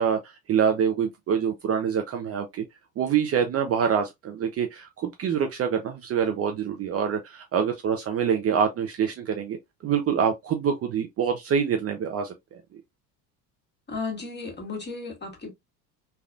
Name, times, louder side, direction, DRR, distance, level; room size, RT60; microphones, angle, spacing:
voice 1, 0.0-2.6 3.0-9.6 9.8-12.6, right 7 dB, 35° right, 0.5 m, -25 dB
voice 2, 13.9-15.5, left 4 dB, 25° left, 1.7 m, -34 dB
3.3 x 2.4 x 2.3 m
hypercardioid pair, 70°, 43 cm